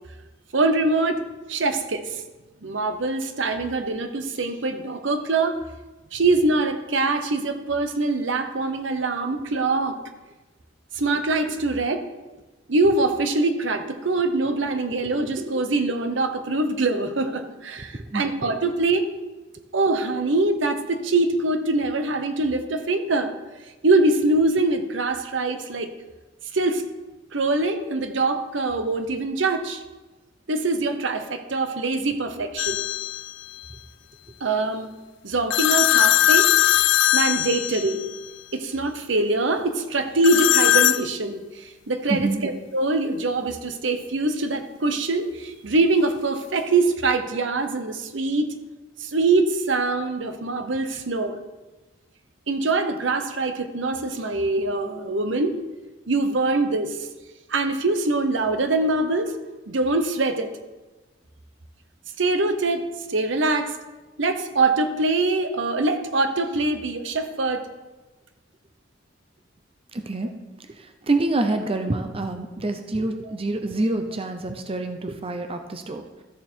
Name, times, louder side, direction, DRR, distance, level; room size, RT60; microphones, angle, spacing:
voice 1, 0.5-1.2 1.5-2.2 2.6-5.6 6.1-10.0 10.9-12.0 12.7-19.1 19.7-23.3 23.8-25.9 26.5-26.8 27.3-29.8 30.5-32.8 34.4-34.9 35.2-36.5 37.1-38.0 38.5-48.5 49.0-51.4 52.5-55.6 56.1-57.1 57.5-59.4 59.7-60.5 62.2-63.7 64.2-67.6, right 2 dB, 75° right, 8 dB, 0.9 m, -23 dB
voice 2, 17.9-18.2 42.1-42.4 69.9-70.3 71.1-76.0, right 2 dB, 30° right, 6 dB, 0.7 m, -26 dB
sound 1, 32.6-33.3 35.5-38.2 40.2-41.1, left 13 dB, 70° left, 0.4 m, -20 dB
13.5 x 6.9 x 4.5 m, 1.2 s
head